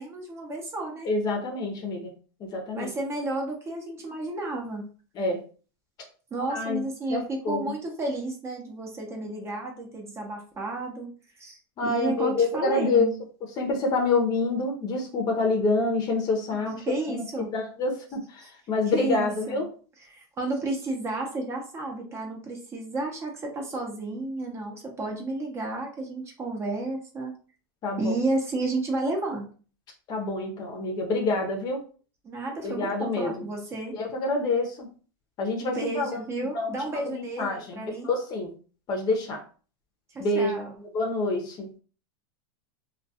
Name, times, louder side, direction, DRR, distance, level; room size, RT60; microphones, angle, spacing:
voice 1, 0.0-1.1 2.7-4.8 6.3-11.1 11.4-13.1 16.6-17.5 18.9-19.6 20.1-27.4 28.0-29.5 32.2-34.0 35.6-38.1 40.1-40.7, right 2 dB, 20° right, 1 dB, 0.6 m, -32 dB
voice 2, 1.0-2.1 2.4-2.9 5.2-5.4 6.5-6.8 7.1-7.6 11.8-13.1 13.6-16.7 17.1-19.7 27.8-28.2 30.1-31.8 32.6-33.5 33.9-34.9 35.4-36.1 36.5-38.5 38.9-39.4 40.2-40.6 40.9-41.7, left 3 dB, 35° left, 2 dB, 0.6 m, -27 dB
2.2 x 2.2 x 2.7 m, 0.39 s
supercardioid pair, 140°, 12 cm